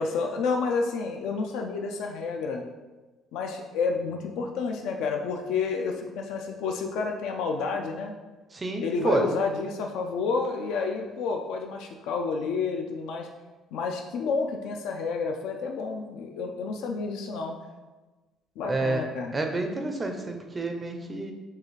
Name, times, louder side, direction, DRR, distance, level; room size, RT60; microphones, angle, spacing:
voice 1, 0.0-2.6 3.3-8.1 8.8-13.3 13.7-17.6 18.6-19.4, left 4 dB, 75° left, 2 dB, 0.4 m, -30 dB
voice 2, 8.5-9.2 18.7-19.0 19.3-21.3, right 2 dB, 15° right, 4 dB, 0.4 m, -29 dB
6.6 x 2.4 x 3.1 m, 1.2 s
cardioid pair, 170°, 0 cm